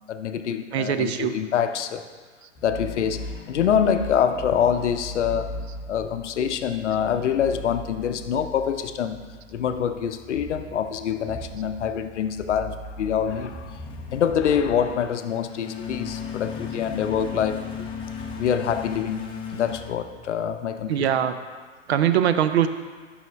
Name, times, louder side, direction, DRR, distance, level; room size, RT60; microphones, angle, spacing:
voice 1, 0.1-2.1 2.6-5.6 5.9-9.2 9.5-13.8 14.1-17.7 18.4-19.2 19.5-21.2, left 8 dB, 65° left, 0.6 m, -25 dB
voice 2, 0.7-1.3 20.9-21.3 21.9-22.7, right 10 dB, 55° right, 0.6 m, -21 dB
sound 1, 2.6-20.7, left 4 dB, 15° left, 0.6 m, -37 dB
13.0 x 6.0 x 2.2 m
figure-of-eight pair, 110°, 38 cm